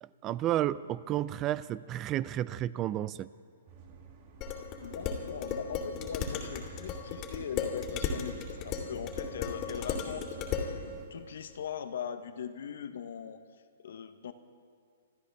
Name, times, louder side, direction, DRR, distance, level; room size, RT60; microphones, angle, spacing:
voice 1, 0.0-3.3, right 13 dB, 30° right, 19 dB, 0.3 m, -32 dB
sound 1, 3.7-11.1, right 5 dB, 50° right, 2.3 m, -51 dB
Dishes pots and pans, 4.4-10.7, left 6 dB, 35° left, 2.4 m, -35 dB
voice 2, 4.8-10.8 11.1-13.4 13.8-14.3, left 8 dB, 70° left, 10 dB, 1.0 m, -40 dB
26.5 x 13.0 x 3.4 m, 2.3 s
hypercardioid pair, 135°, 0 cm